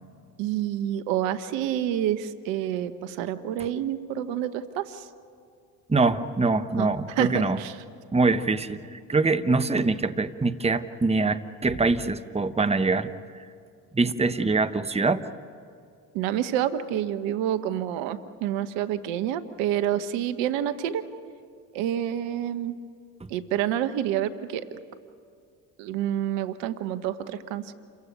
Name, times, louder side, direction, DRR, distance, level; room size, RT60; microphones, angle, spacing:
voice 1, 0.4-5.1 6.8-6.9 7.2-7.7 16.1-21.0 21.7-22.7 23.3-24.6 25.8-27.7, right 11 dB, 70° right, 12 dB, 1.2 m, -28 dB
voice 2, 5.9-7.6 8.1-13.1 13.9-15.3, right 3 dB, 15° right, 11 dB, 1.1 m, -24 dB
28.5 x 15.5 x 9.5 m, 2.4 s
hypercardioid pair, 60°, 45 cm